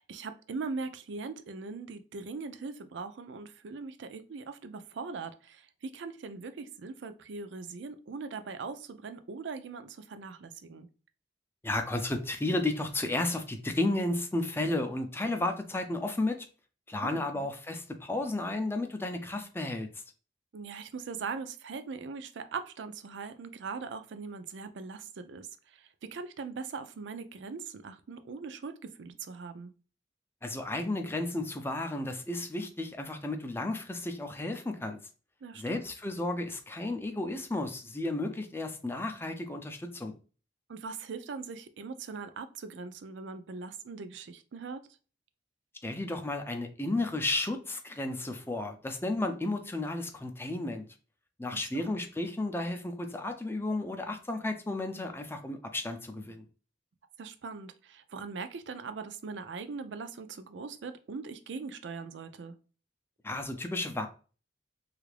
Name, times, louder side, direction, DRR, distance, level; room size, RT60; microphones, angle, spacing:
voice 1, 0.0-10.9 17.0-17.5 20.5-29.7 35.4-35.9 40.7-44.8 51.7-52.0 57.2-62.5, right 4 dB, 90° right, 0.4 m, -41 dB
voice 2, 11.6-16.4 16.9-19.9 30.4-35.0 35.6-40.1 45.8-50.8 51.4-56.5 63.2-64.1, left 2 dB, 15° left, 0.4 m, -33 dB
3.3 x 2.4 x 3.2 m
head